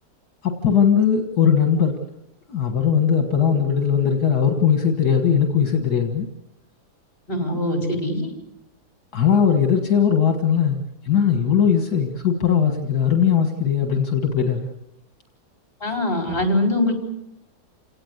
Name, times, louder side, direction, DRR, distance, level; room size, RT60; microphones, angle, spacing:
voice 1, 0.4-2.0 2.5-6.3 7.5-7.6 9.1-10.8 11.0-14.7, left 7 dB, 70° left, 4 dB, 2.1 m, -19 dB
voice 2, 7.3-8.3 15.8-16.9, left 1 dB, 35° left, 3 dB, 5.1 m, -22 dB
28.5 x 18.0 x 8.1 m, 0.85 s
omnidirectional pair, 1.8 m